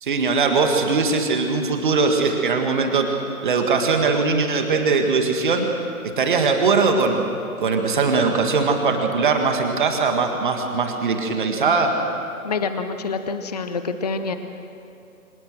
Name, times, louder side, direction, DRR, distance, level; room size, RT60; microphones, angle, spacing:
voice 1, 0.0-3.1 3.4-5.7 6.0-7.3 7.6-11.9, right 4 dB, 35° right, 4 dB, 1.9 m, -20 dB
voice 2, 12.4-14.3, left 4 dB, 30° left, 9 dB, 0.7 m, -26 dB
25.0 x 19.0 x 6.4 m, 2.7 s
figure-of-eight pair, 145°, 44 cm